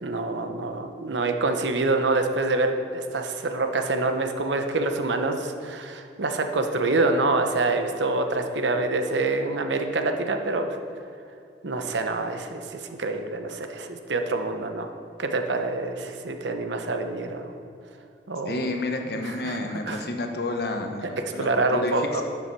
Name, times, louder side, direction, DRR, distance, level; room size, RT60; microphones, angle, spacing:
voice 1, 0.0-10.8 11.6-14.9 15.2-17.5 18.3-18.6 19.1-19.6 19.9-20.0 21.4-22.2, right 2 dB, 80° right, 6 dB, 0.9 m, -26 dB
voice 2, 18.5-22.2, left 2 dB, 60° left, 4 dB, 1.0 m, -30 dB
11.5 x 7.1 x 4.6 m, 2.5 s
head